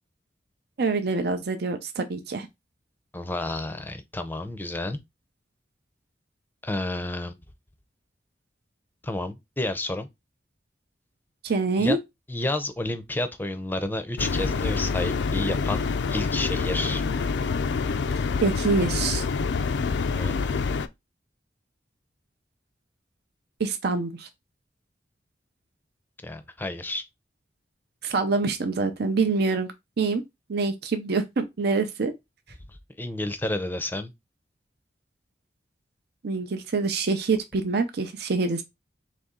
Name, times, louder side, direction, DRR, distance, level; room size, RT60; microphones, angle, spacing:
voice 1, 0.8-2.5 11.4-12.0 18.4-19.2 23.6-24.3 28.0-29.7 30.0-30.2 30.5-32.1 36.2-38.6, right 4 dB, 65° right, 0.6 m, -25 dB
voice 2, 3.1-5.0 6.6-7.4 9.0-10.1 11.8-12.0 12.3-17.0 20.2-20.3 26.2-27.0 33.0-34.1, left 2 dB, 10° left, 0.5 m, -30 dB
sound 1, 14.2-20.9, left 4 dB, 75° left, 0.4 m, -26 dB
4.1 x 3.1 x 3.7 m
head